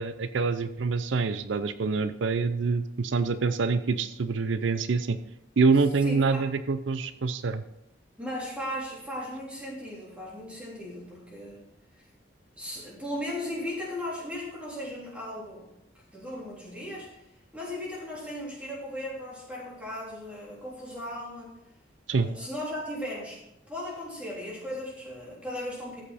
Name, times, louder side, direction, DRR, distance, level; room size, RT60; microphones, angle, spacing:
voice 1, 0.0-5.2 5.6-7.6 22.1-22.3, right 4 dB, 85° right, 12 dB, 0.5 m, -26 dB
voice 2, 6.0-6.4 8.2-11.7 12.6-15.7 16.1-21.6 22.2-23.4 23.7-26.0, left 1 dB, 5° right, -5 dB, 3.5 m, -37 dB
13.0 x 7.6 x 4.2 m, 0.86 s
head